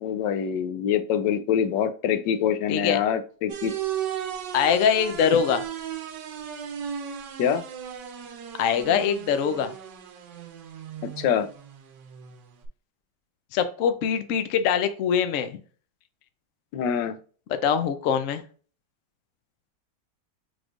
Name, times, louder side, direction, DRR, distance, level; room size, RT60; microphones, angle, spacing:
voice 1, 0.0-3.7 5.2-5.4 7.4-7.6 11.2-11.5 16.7-17.2, left 8 dB, 80° left, 9 dB, 1.2 m, -25 dB
sound 1, 3.5-12.7, right 9 dB, 80° right, 1.4 m, -36 dB
voice 2, 4.5-5.6 8.6-9.7 13.5-15.6 17.6-18.4, left 7 dB, 65° left, 9 dB, 0.8 m, -23 dB
6.0 x 3.2 x 2.5 m, 0.40 s
omnidirectional pair, 1.9 m